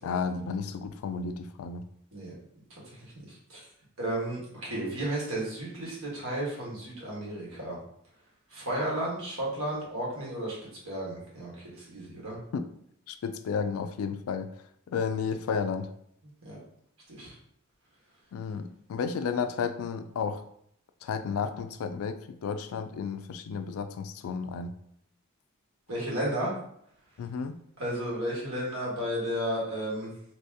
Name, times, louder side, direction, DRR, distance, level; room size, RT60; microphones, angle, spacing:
voice 1, 0.0-1.9 12.5-12.6 13.1-14.5 14.9-15.9 18.3-20.4 21.0-24.8 27.2-27.6, left 6 dB, 75° left, 10 dB, 0.3 m, -32 dB
voice 2, 3.0-3.6 4.0-7.8 8.5-10.6 10.8-12.4 16.4-16.6 17.1-17.3 25.9-26.5 27.8-30.1, right 1 dB, 80° right, -5 dB, 1.4 m, -33 dB
2.9 x 2.7 x 3.5 m, 0.70 s
head